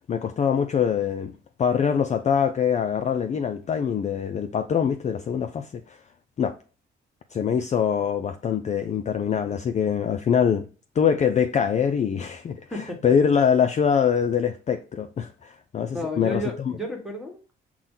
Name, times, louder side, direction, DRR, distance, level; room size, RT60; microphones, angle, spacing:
voice 1, 0.1-1.3 1.6-6.0 6.4-6.5 7.3-10.6 11.0-16.4, left 7 dB, 35° left, 0.4 m, -24 dB
voice 2, 12.7-13.0 15.9-17.5, left 1 dB, ahead, 1.3 m, -32 dB
5.9 x 2.2 x 3.6 m
cardioid pair, 90°, 20 cm